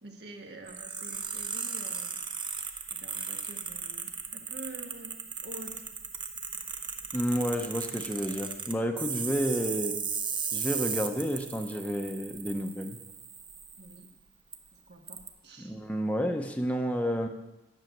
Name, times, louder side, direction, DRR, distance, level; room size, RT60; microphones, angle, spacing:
voice 1, 0.0-2.2 2.9-5.2 5.4-5.8 13.8-14.1 14.7-15.8, right 1 dB, 60° right, 3 dB, 1.5 m, -47 dB
sound 1, 0.7-14.0 14.5-14.6 15.1-15.3, right 6 dB, 25° right, 0.7 m, -37 dB
voice 2, 7.1-10.0 10.5-13.0 15.6-17.3, equal, 5° left, 4 dB, 0.7 m, -30 dB
10.5 x 6.3 x 7.8 m, 1.0 s
head